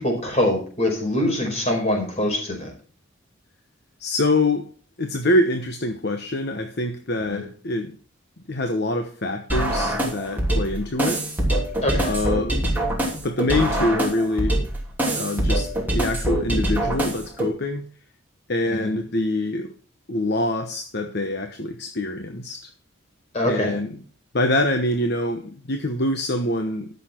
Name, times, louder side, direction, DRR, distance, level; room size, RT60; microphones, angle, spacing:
voice 1, 0.0-2.7 7.3-7.4 11.8-12.1 18.7-19.0 23.3-23.8, left 1 dB, 30° left, 5.0 m, -24 dB
voice 2, 4.0-4.7 5.0-7.9 8.5-11.2 12.0-12.7 13.1-14.5 15.1-17.9 18.5-19.7 20.1-22.7 23.4-23.9 24.3-26.9, left 1 dB, 50° left, 1.1 m, -25 dB
sound 1, 9.5-17.5, right 1 dB, 10° right, 2.9 m, -24 dB
13.5 x 6.9 x 4.5 m
head